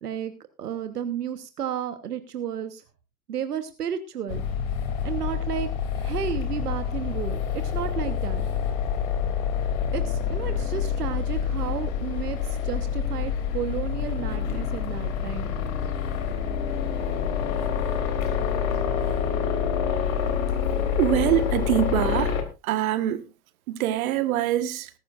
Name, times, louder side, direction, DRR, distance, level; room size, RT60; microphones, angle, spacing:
voice 1, 0.0-0.3 0.6-2.8 3.3-4.4 5.0-5.7 5.9-8.5 9.9-15.5, right 9 dB, 80° right, 1.3 m, -32 dB
sound 1, 4.3-22.4, left 7 dB, 60° left, 3.0 m, -27 dB
voice 2, 20.9-22.3 22.6-23.2 23.7-24.9, right 12 dB, 65° right, 1.5 m, -24 dB
20.0 x 11.5 x 2.5 m
hypercardioid pair, 90°, 46 cm